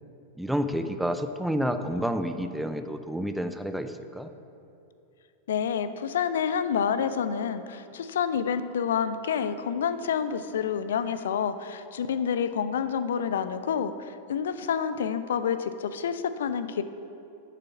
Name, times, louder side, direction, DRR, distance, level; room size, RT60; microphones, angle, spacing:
voice 1, 0.4-4.3, equal, ahead, 8 dB, 0.5 m, -29 dB
voice 2, 5.5-16.8, left 7 dB, 60° left, 12 dB, 0.4 m, -28 dB
7.3 x 6.8 x 5.6 m, 2.8 s
figure-of-eight pair, 90°, 0 cm